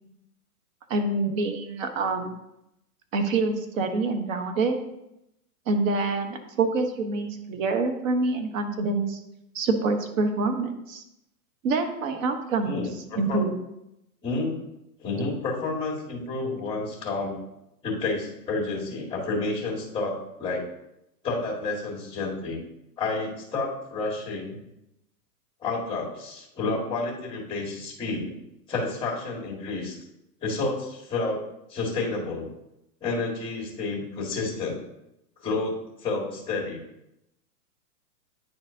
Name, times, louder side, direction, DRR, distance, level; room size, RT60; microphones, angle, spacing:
voice 1, 0.9-2.3 3.1-4.8 5.7-9.2 9.5-11.0 11.6-12.8 13.1-13.5, right 3 dB, 55° right, 6 dB, 1.1 m, -26 dB
voice 2, 12.6-13.4 14.2-14.6 15.0-17.4 17.8-20.6 21.2-22.6 23.0-24.6 25.6-28.3 28.7-30.0 30.4-31.4 31.7-32.5 33.0-34.8 35.4-36.8, left 3 dB, 10° left, -2 dB, 1.8 m, -30 dB
9.4 x 4.3 x 2.7 m, 0.85 s
hypercardioid pair, 135°, 47 cm